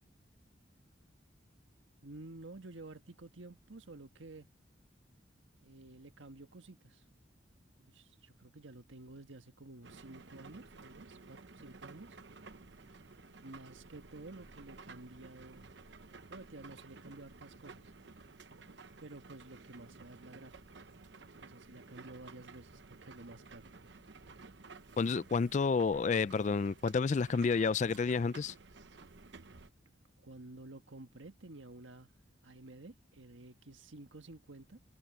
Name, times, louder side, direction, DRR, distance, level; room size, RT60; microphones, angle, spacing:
voice 1, 2.0-4.5 5.6-7.0 7.8-12.2 13.4-15.7 16.3-17.9 19.0-20.8 21.4-23.7 30.2-32.1 32.4-34.8, right 2 dB, 85° right, 1.5 m, -52 dB
sound 1, 9.8-29.7, right 3 dB, 65° right, 0.9 m, -54 dB
voice 2, 25.0-28.5, left 4 dB, 40° left, 0.3 m, -30 dB
head